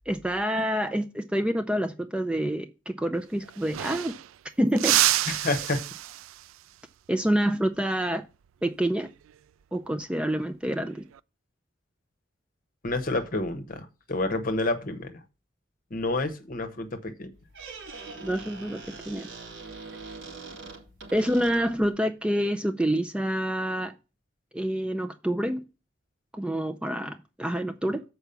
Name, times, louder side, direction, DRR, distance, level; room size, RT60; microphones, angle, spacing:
voice 1, 0.1-4.2 4.6-5.0 7.1-8.3 8.6-9.1 9.7-11.1 18.2-19.3 21.1-23.9 24.5-25.6 26.3-28.0, right 1 dB, 5° right, 0.4 m, -27 dB
sound 1, 3.1-3.2 3.4-4.4 4.8-6.5 9.0-9.3 10.7-11.2, right 14 dB, 85° right, 0.3 m, -28 dB
voice 2, 5.3-5.8 12.8-15.2 15.9-17.3, left 2 dB, 45° left, 1.0 m, -29 dB
Squeak, 17.3-21.9, right 4 dB, 70° right, 2.6 m, -43 dB
7.1 x 4.6 x 6.8 m
head